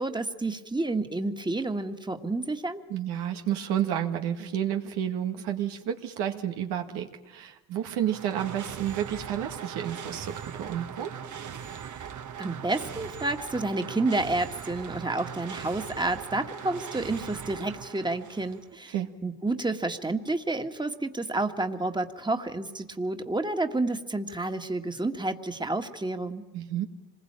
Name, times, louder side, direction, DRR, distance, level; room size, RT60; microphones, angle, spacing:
voice 1, 0.0-2.8 11.9-12.1 12.4-18.9 19.2-26.4, right 2 dB, 10° right, 6 dB, 1.8 m, -30 dB
voice 2, 2.9-11.1 18.9-19.1 26.5-26.9, right 10 dB, 90° right, 4 dB, 1.9 m, -30 dB
sound 1, 7.9-18.7, right 8 dB, 50° right, 1.3 m, -40 dB
26.0 x 21.0 x 8.9 m, 1.1 s
cardioid pair, 80°, 39 cm